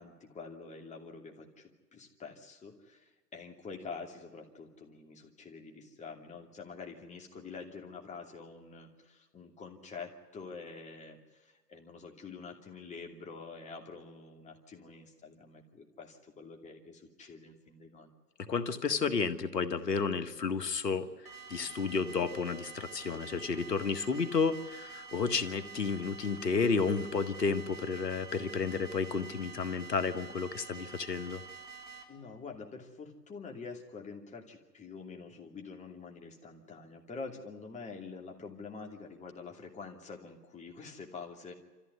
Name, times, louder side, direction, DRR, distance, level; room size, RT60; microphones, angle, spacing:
voice 1, 0.0-18.1 32.1-41.5, left 4 dB, 15° left, 2 dB, 2.8 m, -47 dB
voice 2, 18.5-21.1 21.5-31.4, left 5 dB, 85° left, 9 dB, 1.8 m, -31 dB
sound 1, 21.3-32.0, right 5 dB, 65° right, 4.1 m, -48 dB
26.5 x 14.5 x 9.5 m, 1.3 s
hypercardioid pair, 125°, 48 cm